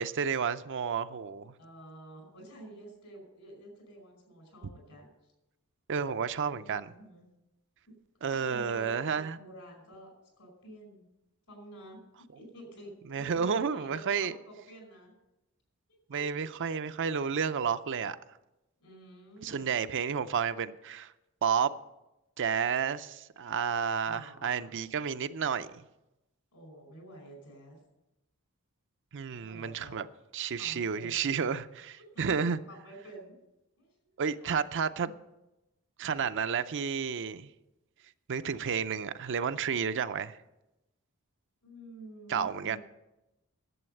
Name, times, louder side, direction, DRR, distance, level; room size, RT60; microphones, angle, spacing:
voice 1, 0.0-1.5 5.9-6.9 8.2-9.4 13.1-14.4 16.1-18.2 19.4-21.1 21.4-21.7 22.4-25.9 29.1-30.1 30.3-32.6 34.2-35.1 36.0-37.5 38.3-40.4 42.3-42.8, right 6 dB, 55° right, 0.5 m, -31 dB
voice 2, 1.6-5.1 6.5-7.3 8.3-10.1 10.4-11.1 11.5-12.0 12.3-12.9 13.2-15.1 15.9-16.2 18.8-19.6 24.0-24.8 26.5-27.8 29.3-30.0 30.6-31.2 32.0-33.4 33.8-34.1 34.4-34.5 35.0-35.1 41.6-42.8, right 1 dB, 75° left, 5.2 m, -50 dB
11.0 x 7.9 x 7.7 m
head